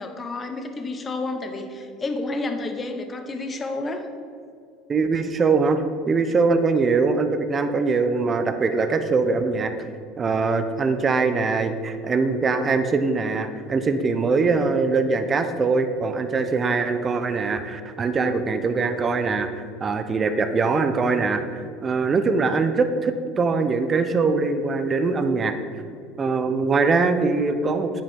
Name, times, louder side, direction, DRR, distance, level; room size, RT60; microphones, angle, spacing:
voice 1, 0.0-4.1, left 2 dB, 25° left, 6 dB, 0.9 m, -30 dB
voice 2, 4.9-9.7 10.2-25.5 26.2-28.0, right 4 dB, 30° right, 9 dB, 0.6 m, -22 dB
9.1 x 5.0 x 3.6 m, 2.4 s
hypercardioid pair, 85°, 0 cm